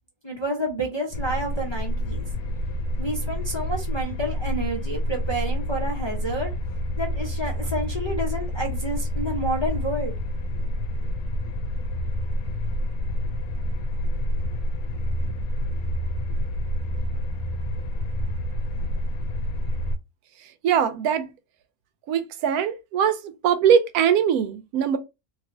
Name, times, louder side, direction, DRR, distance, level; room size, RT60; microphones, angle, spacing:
voice 1, 0.2-2.3 3.0-6.5 7.0-10.1, right 1 dB, 30° left, 0.5 m, -29 dB
sound 1, 1.1-20.0, equal, 80° left, 1.0 m, -28 dB
voice 2, 20.6-21.3 22.1-25.0, right 8 dB, 90° right, 1.1 m, -21 dB
3.1 x 2.7 x 2.6 m
omnidirectional pair, 1.5 m